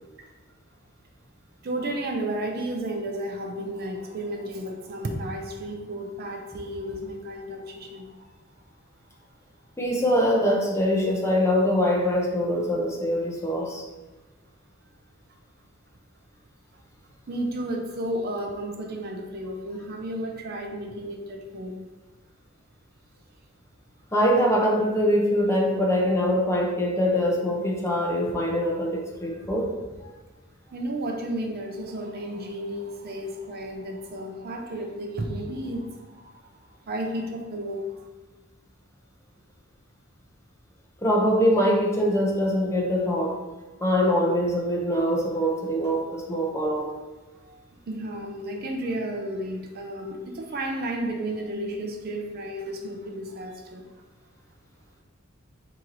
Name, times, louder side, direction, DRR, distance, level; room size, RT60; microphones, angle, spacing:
voice 1, 1.6-8.2 17.3-21.9 30.7-36.3 36.9-38.1 47.4-53.9, right 1 dB, 50° right, 2 dB, 0.5 m, -33 dB
voice 2, 9.8-13.8 24.1-29.7 41.0-43.3 43.8-46.9, equal, 15° left, -2 dB, 0.7 m, -23 dB
4.4 x 2.9 x 3.8 m, 1.2 s
head